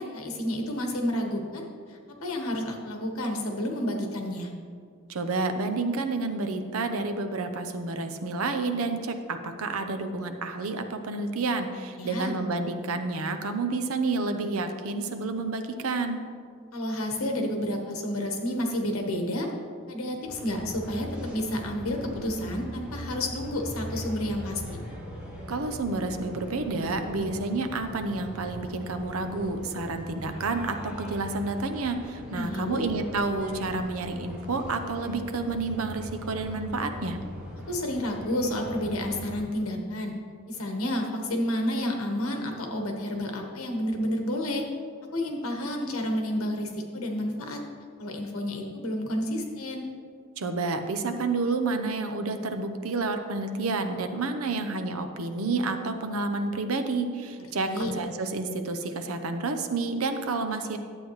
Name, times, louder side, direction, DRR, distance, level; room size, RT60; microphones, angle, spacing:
voice 1, 0.0-4.5 12.0-12.3 16.7-19.5 19.9-24.8 32.3-32.8 37.7-40.1 40.5-44.6 45.1-47.6 48.0-49.9 57.6-57.9, left 1 dB, 80° left, 2 dB, 1.3 m, -30 dB
voice 2, 5.1-16.2 25.5-37.2 50.4-60.8, right 3 dB, 80° right, 7 dB, 0.7 m, -30 dB
sound 1, 20.2-39.4, equal, 5° right, 2.0 m, -40 dB
11.5 x 8.0 x 3.1 m, 2.1 s
head